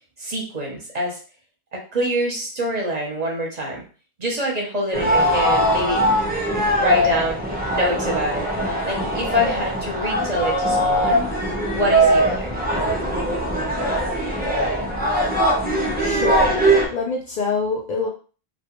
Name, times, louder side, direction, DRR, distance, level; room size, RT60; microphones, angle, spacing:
voice 1, 0.2-1.2 1.7-3.8 4.2-6.0 6.7-7.4 7.7-8.5 8.8-11.2 11.7-12.6, equal, 45° right, -1 dB, 0.7 m, -25 dB
sound 1, 4.9-16.9, right 1 dB, 15° right, 0.4 m, -21 dB
voice 2, 16.0-18.1, left 4 dB, 55° left, -1 dB, 0.5 m, -26 dB
2.2 x 2.1 x 2.9 m, 0.37 s
omnidirectional pair, 1.1 m